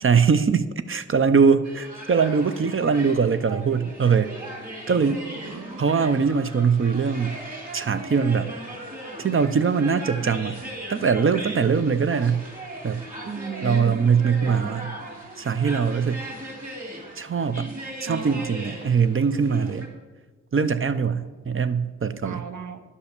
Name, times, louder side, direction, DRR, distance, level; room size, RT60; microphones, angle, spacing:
voice 1, 0.0-4.3 4.9-5.2 5.8-7.4 7.7-8.5 9.2-10.6 10.9-12.4 12.8-13.0 13.6-14.9 15.4-16.2 17.2-17.7 18.0-19.9 20.5-22.4, right 6 dB, 45° right, 12 dB, 0.6 m, -22 dB
sound 1, 1.6-19.9, right 1 dB, 25° right, 3.0 m, -38 dB
voice 2, 4.9-5.8 13.2-14.8 18.1-18.5 22.2-22.8, right 6 dB, 80° right, 8 dB, 1.0 m, -36 dB
11.0 x 5.7 x 6.6 m, 1.3 s
wide cardioid pair, 75°, 30 cm